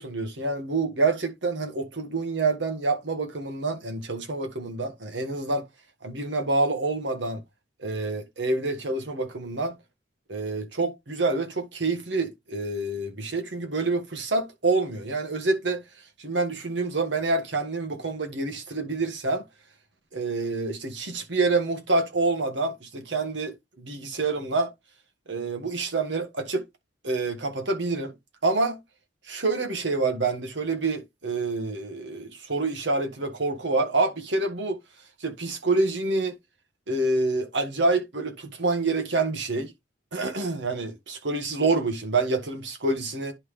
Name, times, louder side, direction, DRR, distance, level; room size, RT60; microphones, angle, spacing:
voice 1, 0.0-5.6 6.0-7.4 7.8-9.8 10.3-15.8 16.2-19.4 20.1-24.7 25.3-26.6 27.0-28.1 28.4-28.8 29.3-34.8 35.2-36.4 36.9-39.7 40.1-43.3, right 3 dB, 75° right, 1.5 m, -27 dB
10.5 x 3.6 x 3.2 m
head